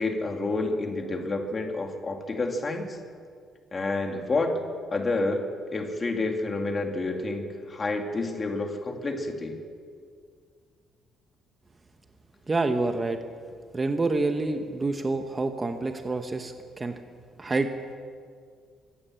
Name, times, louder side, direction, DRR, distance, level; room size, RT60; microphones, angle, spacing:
voice 1, 0.0-2.9 3.7-4.6 4.9-5.4 5.7-9.5, left 2 dB, 20° left, 3 dB, 2.3 m, -29 dB
voice 2, 12.5-13.2 13.7-17.0 17.4-17.7, right 3 dB, 15° right, 6 dB, 0.9 m, -27 dB
24.5 x 16.0 x 7.6 m, 2.1 s
cardioid pair, 180°, 0 cm